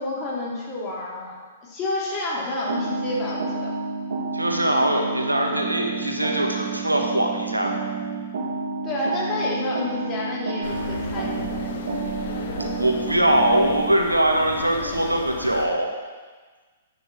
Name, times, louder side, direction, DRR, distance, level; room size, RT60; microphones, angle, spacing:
voice 1, 0.0-3.7 8.8-11.8, left 2 dB, 25° left, -4 dB, 2.8 m, -29 dB
sound 1, 2.7-14.0, right 4 dB, 55° right, 1.9 m, -30 dB
voice 2, 4.3-7.7 12.8-15.9, right 1 dB, 85° right, 2 dB, 1.4 m, -22 dB
sound 2, 10.6-15.7, left 4 dB, 50° left, 1.2 m, -35 dB
10.5 x 8.9 x 4.2 m, 1.4 s
figure-of-eight pair, 115°, 0 cm